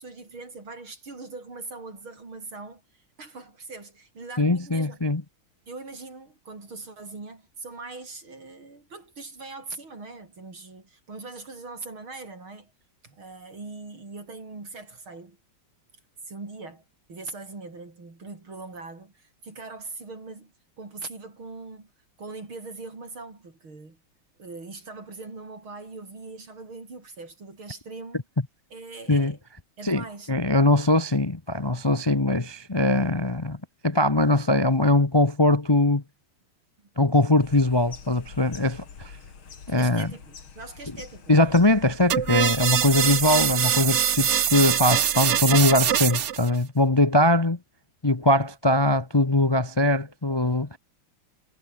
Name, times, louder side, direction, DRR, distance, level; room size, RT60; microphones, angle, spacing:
voice 1, 0.0-5.0 5.7-12.7 13.0-15.4 16.3-16.8 17.1-21.9 22.2-24.0 24.4-28.2 28.7-29.4 29.8-30.3 36.8-36.9 39.8-41.4, right 3 dB, 85° right, 6.5 m, -41 dB
voice 2, 4.4-5.2 29.1-29.3 29.8-33.6 33.8-36.0 37.0-39.1 39.7-40.1 41.3-47.6 48.0-50.8, left 1 dB, 25° left, 0.6 m, -21 dB
sound 1, 37.4-43.7, left 6 dB, 90° left, 3.5 m, -45 dB
sound 2, 42.1-46.5, right 9 dB, 60° right, 0.7 m, -23 dB
omnidirectional pair, 2.2 m